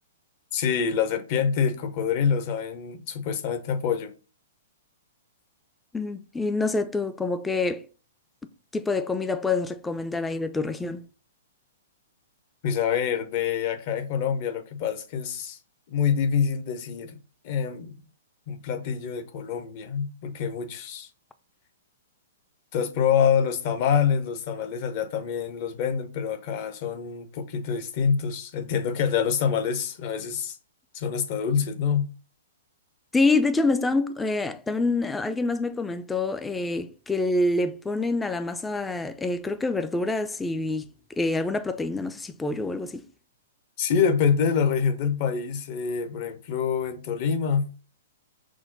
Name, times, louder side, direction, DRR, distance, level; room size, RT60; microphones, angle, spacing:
voice 1, 0.5-4.1 12.6-15.6 15.9-17.2 17.4-18.0 18.5-21.1 22.7-30.6 30.9-32.1 43.8-47.7, left 7 dB, 45° left, 0.7 m, -26 dB
voice 2, 5.9-7.9 8.7-11.0 33.1-40.9 41.2-43.0, left 3 dB, 10° left, 0.4 m, -26 dB
6.1 x 2.1 x 3.9 m
figure-of-eight pair, 115°, 0 cm